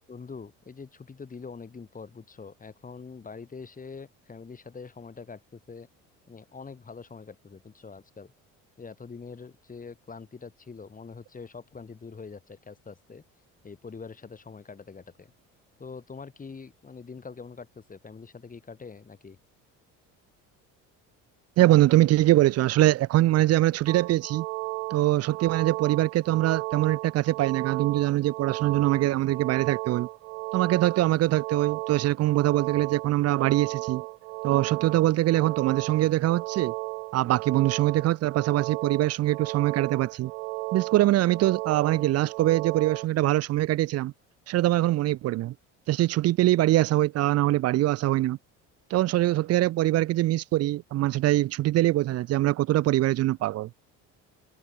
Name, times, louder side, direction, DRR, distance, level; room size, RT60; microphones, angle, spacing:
voice 1, 0.1-5.9 6.3-8.3 8.8-13.2 13.6-15.3 15.8-19.4, left 5 dB, 20° left, 1.5 m, -44 dB
voice 2, 21.6-24.5 24.9-30.1 30.5-34.0 34.4-36.7 37.1-40.3 40.7-44.1 44.5-45.5 45.9-48.4 48.9-53.7, right 15 dB, 45° right, 0.4 m, -23 dB
sound 1, 23.9-43.1, right 24 dB, 90° right, 1.2 m, -34 dB
supercardioid pair, 75°, 36 cm